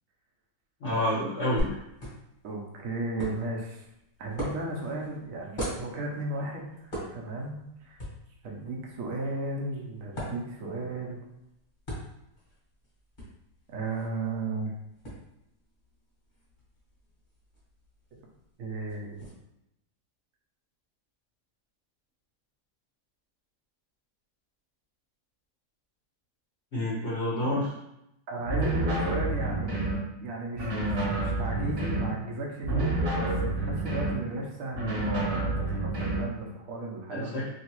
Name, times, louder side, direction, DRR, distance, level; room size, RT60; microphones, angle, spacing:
voice 1, 0.8-1.7 26.7-27.7 37.1-37.5, left 1 dB, 50° left, -7 dB, 0.8 m, -28 dB
sound 1, 1.6-19.3, equal, 35° left, 1.2 m, -42 dB
voice 2, 2.4-3.9 4.2-8.0 8.4-11.2 13.7-14.7 18.1-18.2 18.6-19.3 28.3-29.9 30.2-37.5, right 2 dB, 65° right, -1 dB, 0.9 m, -35 dB
sound 2, 28.5-30.0 30.5-32.1 32.6-34.2 34.7-36.3, right 2 dB, 40° right, 1.0 m, -29 dB
3.0 x 2.8 x 2.9 m, 0.85 s
omnidirectional pair, 1.9 m